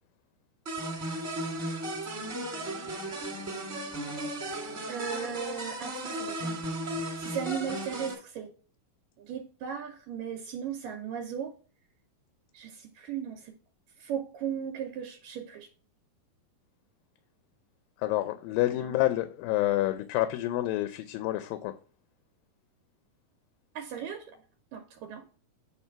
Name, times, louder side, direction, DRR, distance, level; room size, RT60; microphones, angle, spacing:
sound 1, 0.6-8.1, right 1 dB, 25° right, 1.9 m, -35 dB
voice 1, 4.9-6.6 7.2-8.5 9.2-11.5 12.5-13.5 14.0-15.7 18.7-19.0 23.8-24.4 24.7-25.2, right 8 dB, 75° right, 2.4 m, -37 dB
voice 2, 18.0-21.7, left 15 dB, 85° left, 2.3 m, -28 dB
9.0 x 3.4 x 5.7 m
omnidirectional pair, 4.0 m